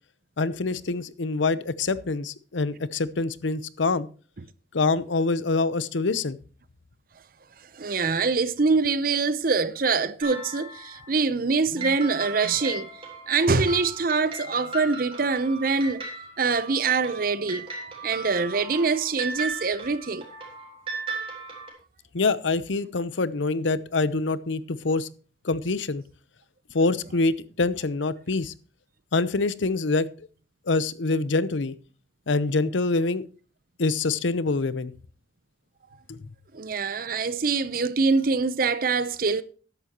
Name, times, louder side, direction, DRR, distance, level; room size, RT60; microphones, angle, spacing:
voice 1, 0.4-4.1 4.7-6.4 11.7-12.0 12.4-12.5 22.1-25.1 25.4-26.0 26.7-28.5 29.1-30.3 30.7-31.8 32.3-33.2 33.8-34.9 36.1-36.2, left 3 dB, 85° left, 0.7 m, -25 dB
voice 2, 7.7-12.9 13.3-16.0 16.4-17.7 18.0-20.2 36.5-39.4, right 4 dB, 50° right, 0.7 m, -24 dB
sound 1, 10.2-11.1 11.8-21.7, right 3 dB, 30° right, 3.6 m, -37 dB
14.0 x 11.0 x 2.9 m
head